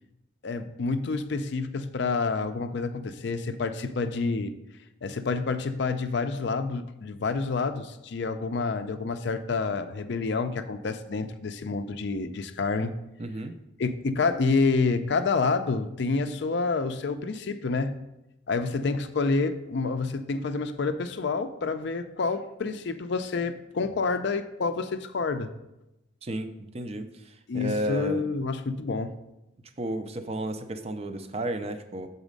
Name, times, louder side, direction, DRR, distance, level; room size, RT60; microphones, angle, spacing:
voice 1, 0.4-4.5 5.0-12.9 13.8-17.9 18.5-25.5 27.5-29.1, left 4 dB, 60° left, 9 dB, 0.4 m, -28 dB
voice 2, 13.2-13.6 26.2-27.1 27.5-28.3 29.8-32.1, right 1 dB, 30° right, 8 dB, 0.4 m, -32 dB
7.1 x 4.1 x 5.1 m, 0.91 s
head